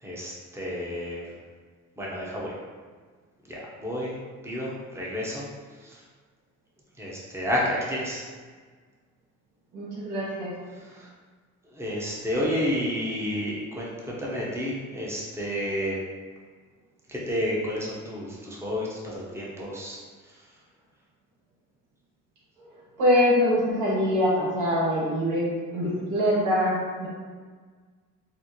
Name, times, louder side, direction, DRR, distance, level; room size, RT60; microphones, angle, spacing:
voice 1, 0.0-1.3 2.0-2.5 3.4-4.2 4.4-5.4 5.8-6.0 7.0-8.2 10.7-11.1 11.7-16.0 17.1-20.0, equal, 10° right, -5 dB, 0.8 m, -30 dB
voice 2, 9.7-10.5 22.6-22.7 23.0-27.1, left 1 dB, 80° right, -8 dB, 1.4 m, -24 dB
4.3 x 2.1 x 2.9 m, 1.5 s
cardioid pair, 90°, 30 cm